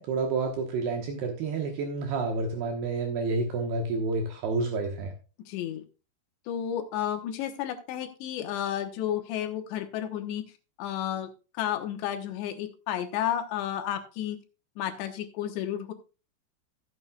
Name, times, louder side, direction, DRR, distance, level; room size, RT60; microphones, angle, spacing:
voice 1, 0.0-5.1, right 3 dB, 70° right, 3 dB, 3.0 m, -29 dB
voice 2, 5.5-5.8 6.5-10.4 10.8-11.3 11.6-14.4 14.8-15.9, left 10 dB, 80° left, 6 dB, 3.3 m, -32 dB
15.0 x 8.7 x 2.3 m, 0.33 s
omnidirectional pair, 5.1 m